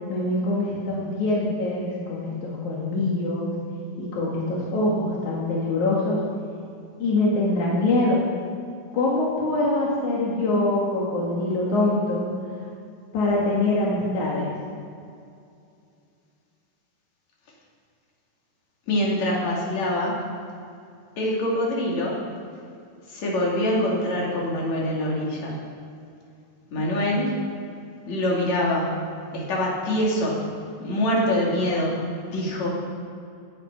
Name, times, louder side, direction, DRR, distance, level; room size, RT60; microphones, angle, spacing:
voice 1, 0.1-3.6 4.0-6.2 7.0-8.2 8.9-12.3 13.1-14.5, left 2 dB, 85° left, -5 dB, 3.5 m, -24 dB
voice 2, 18.9-20.2 21.2-22.2 23.1-25.6 26.7-27.3 28.1-29.0 29.3-30.4 30.8-31.9 32.3-32.7, left 1 dB, 70° left, -4 dB, 4.0 m, -24 dB
17.5 x 10.0 x 5.5 m, 2.4 s
omnidirectional pair, 3.3 m